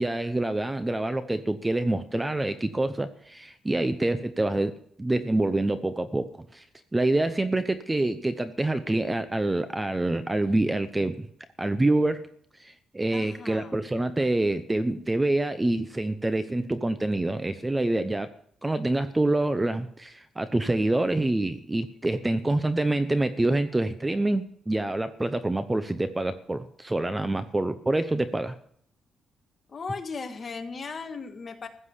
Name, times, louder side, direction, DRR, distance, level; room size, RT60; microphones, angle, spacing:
voice 1, 0.0-4.7 5.0-6.6 6.9-11.3 11.6-12.3 12.6-18.3 18.6-28.6, right 2 dB, 10° right, 11 dB, 0.6 m, -26 dB
voice 2, 13.1-13.8 29.7-31.7, left 4 dB, 35° left, 5 dB, 1.7 m, -37 dB
15.0 x 7.5 x 8.3 m, 0.65 s
cardioid pair, 135°, 0 cm